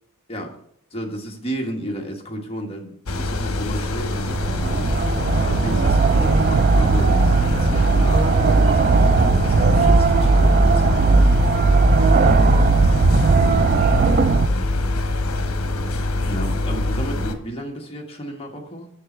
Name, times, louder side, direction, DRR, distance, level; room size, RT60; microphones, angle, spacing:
voice 1, 0.9-11.3 13.4-13.6 16.2-18.9, right 1 dB, 25° left, 1 dB, 1.3 m, -32 dB
sound 1, 3.1-17.3, left 2 dB, 75° left, 0.9 m, -24 dB
sound 2, 4.1-14.5, right 4 dB, 45° right, 0.4 m, -17 dB
7.0 x 6.5 x 4.4 m, 0.68 s
head